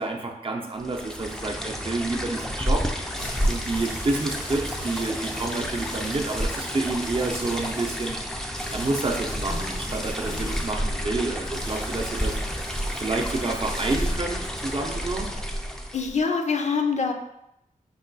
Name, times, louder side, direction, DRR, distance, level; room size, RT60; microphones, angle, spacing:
voice 1, 0.0-2.9 3.5-8.2 8.7-12.4 13.0-15.4, right 2 dB, 40° right, 2 dB, 0.6 m, -29 dB
sound 1, 0.8-16.2, equal, 5° left, 0.4 m, -30 dB
sound 2, 2.9-14.1, left 1 dB, 90° left, 0.9 m, -41 dB
voice 2, 10.2-10.6 15.9-17.1, left 5 dB, 55° left, 5 dB, 0.5 m, -26 dB
5.3 x 2.2 x 4.0 m, 0.81 s
wide cardioid pair, 105°, 14 cm